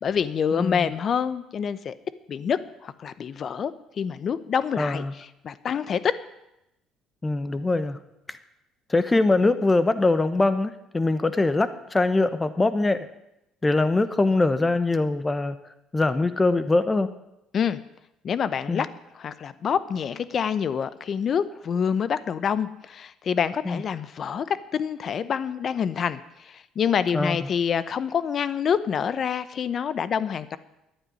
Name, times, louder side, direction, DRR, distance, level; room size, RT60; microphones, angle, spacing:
voice 1, 0.0-1.9 2.3-3.7 4.0-6.2 17.5-17.8 18.2-18.9 19.2-30.6, left 7 dB, 45° left, 15 dB, 0.9 m, -27 dB
voice 2, 0.5-0.9 4.8-5.1 7.2-8.0 8.9-13.1 13.6-15.6 15.9-17.1 18.7-18.8 23.6-23.8 27.1-27.5, left 2 dB, 15° left, 12 dB, 1.1 m, -23 dB
11.5 x 9.6 x 9.6 m, 0.88 s
cardioid pair, 100°, 0 cm